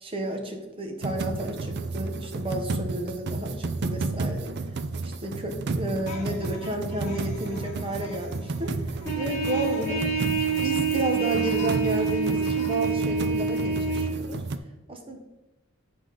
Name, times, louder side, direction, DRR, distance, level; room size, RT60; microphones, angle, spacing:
voice 1, 0.0-4.6 5.0-10.0 10.6-14.4 14.9-15.2, right 1 dB, 25° right, 3 dB, 1.0 m, -32 dB
sound 1, 1.0-14.6, right 3 dB, 50° right, 0.4 m, -32 dB
sound 2, 6.0-12.9, left 3 dB, 35° left, 1.9 m, -44 dB
Trumpet, 9.0-14.1, right 6 dB, 10° left, 2.7 m, -27 dB
8.8 x 4.9 x 3.9 m, 1.1 s
head